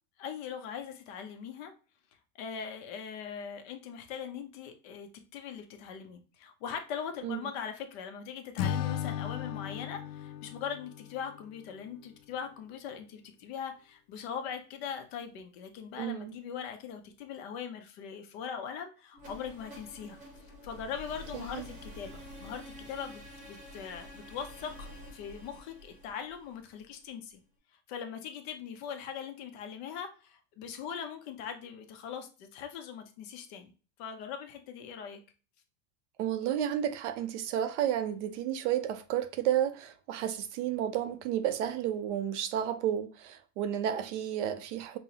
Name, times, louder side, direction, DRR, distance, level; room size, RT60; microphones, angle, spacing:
voice 1, 0.2-1.7 2.3-20.2 20.6-27.4 27.9-33.7 34.0-35.2, left 7 dB, 45° left, 0.6 m, -41 dB
Acoustic guitar / Strum, 8.6-11.8, left 9 dB, 90° left, 0.5 m, -36 dB
voice 2, 16.0-16.3 21.3-21.7 36.2-45.0, right 10 dB, 50° right, 0.5 m, -32 dB
sound 1, 19.1-27.1, left 1 dB, 15° right, 0.8 m, -48 dB
5.4 x 2.0 x 2.7 m
supercardioid pair, 155°, 46 cm